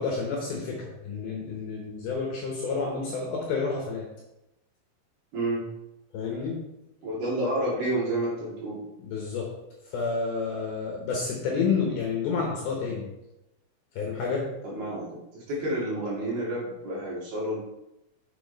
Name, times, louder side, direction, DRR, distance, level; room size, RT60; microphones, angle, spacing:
voice 1, 0.0-4.1 6.1-6.6 9.0-9.6 9.9-13.1 14.0-14.5, left 4 dB, 70° left, -1 dB, 2.5 m, -30 dB
voice 2, 7.0-8.8 14.6-15.1 15.3-17.6, right 1 dB, 55° right, -6 dB, 3.8 m, -29 dB
7.1 x 7.0 x 4.1 m, 0.90 s
omnidirectional pair, 5.5 m